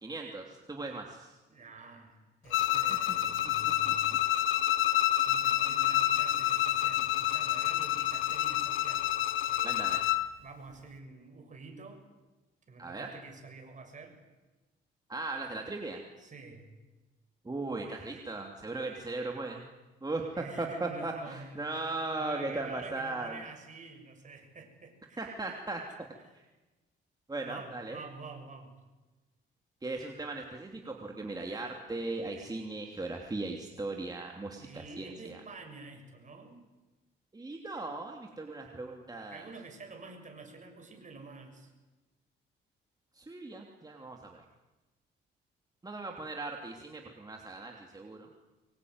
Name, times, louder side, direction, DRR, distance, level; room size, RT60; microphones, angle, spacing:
voice 1, 0.0-1.4 2.9-3.0 3.8-3.9 9.6-10.0 12.8-13.1 15.1-16.0 17.4-19.6 20.0-23.4 25.2-25.8 26.3-26.5 27.3-28.0 29.8-35.4 37.3-39.5 43.1-44.4 45.8-48.3, right 2 dB, 20° right, 1 dB, 3.0 m, -38 dB
voice 2, 1.5-4.2 5.1-9.1 9.5-10.0 10.4-12.1 12.7-14.2 16.2-16.7 20.3-21.6 22.2-25.3 25.7-25.8 27.4-28.7 34.6-36.6 39.3-41.7, right 3 dB, 40° right, 5 dB, 6.7 m, -48 dB
Bowed string instrument, 2.5-10.3, left 13 dB, 85° left, 1.0 m, -28 dB
24.5 x 22.5 x 9.7 m, 1.1 s
cardioid pair, 90°, 20 cm